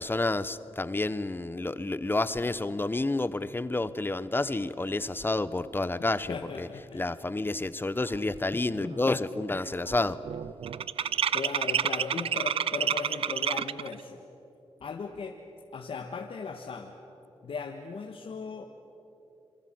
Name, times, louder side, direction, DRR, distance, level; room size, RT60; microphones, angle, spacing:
voice 1, 0.0-6.7 6.9-10.2, left 2 dB, 20° left, 15 dB, 0.9 m, -29 dB
voice 2, 6.3-7.1 11.3-14.2 14.8-15.4 15.7-17.0 17.4-18.6, left 5 dB, 65° left, 3 dB, 1.6 m, -37 dB
sound 1, 8.7-9.1 9.3-13.9, right 8 dB, 70° right, 0.5 m, -29 dB
27.5 x 23.0 x 7.8 m, 3.0 s
cardioid pair, 85°, 10 cm